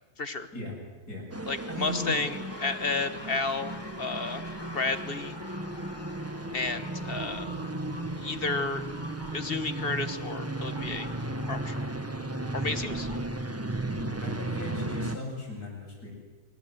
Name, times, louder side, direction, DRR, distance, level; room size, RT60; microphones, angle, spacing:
voice 1, 0.2-0.5 1.5-4.5 4.7-5.4 6.5-7.5 8.2-8.8 9.3-11.1 11.5-11.9 12.5-13.1, left 3 dB, 40° left, 11 dB, 1.5 m, -32 dB
voice 2, 1.1-2.1 13.8-16.1, left 1 dB, 80° left, -1 dB, 8.8 m, -38 dB
sound 1, 1.3-15.2, right 2 dB, 10° right, 1.1 m, -35 dB
sound 2, 1.8-13.2, left 1 dB, 15° left, 1.9 m, -48 dB
sound 3, 3.0-14.3, right 3 dB, 30° right, 1.5 m, -47 dB
26.0 x 25.0 x 7.9 m, 1.1 s
omnidirectional pair, 1.6 m